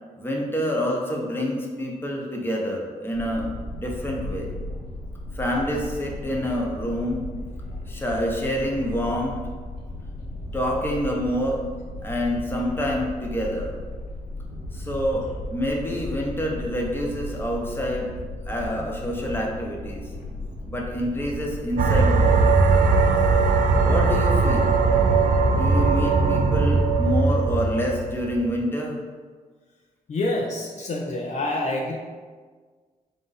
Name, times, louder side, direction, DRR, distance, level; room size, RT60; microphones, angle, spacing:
voice 1, 0.1-3.5 3.8-4.5 5.3-7.2 7.9-9.4 10.5-11.6 12.0-13.7 14.7-18.1 18.5-20.1 20.7-22.7 23.8-24.7 25.5-29.0, equal, 15° left, -1 dB, 0.9 m, -27 dB
sound 1, 3.1-22.9, left 1 dB, 75° left, 0.9 m, -36 dB
sound 2, 21.8-28.4, right 4 dB, 60° right, 0.4 m, -19 dB
voice 2, 30.1-32.0, left 2 dB, 50° left, 0 dB, 0.5 m, -27 dB
3.7 x 2.6 x 4.0 m, 1.5 s
supercardioid pair, 60°, 15 cm